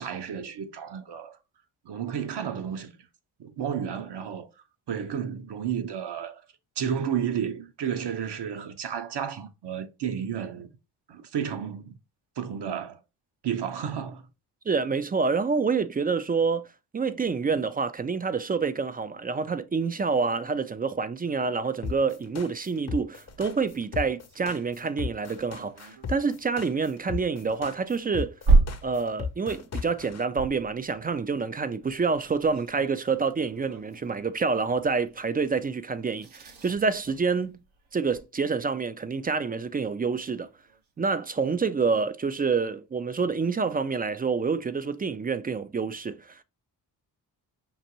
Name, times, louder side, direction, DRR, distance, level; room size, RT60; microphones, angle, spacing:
voice 1, 0.0-1.4 1.8-2.9 3.4-4.5 4.9-6.4 6.8-10.7 11.1-11.9 12.4-13.0 13.4-14.2, right 8 dB, 55° right, 0.9 m, -32 dB
voice 2, 14.7-16.7 16.9-28.4 28.8-37.6 37.9-40.5 41.0-46.4, right 5 dB, 20° right, 0.3 m, -27 dB
sound 1, 21.8-30.2, left 5 dB, 35° left, 0.6 m, -35 dB
sound 2, 23.3-38.3 39.6-39.7 40.0-40.1 40.4-41.0, right 3 dB, 75° right, 1.2 m, -32 dB
5.4 x 2.6 x 2.8 m
supercardioid pair, 50°, 48 cm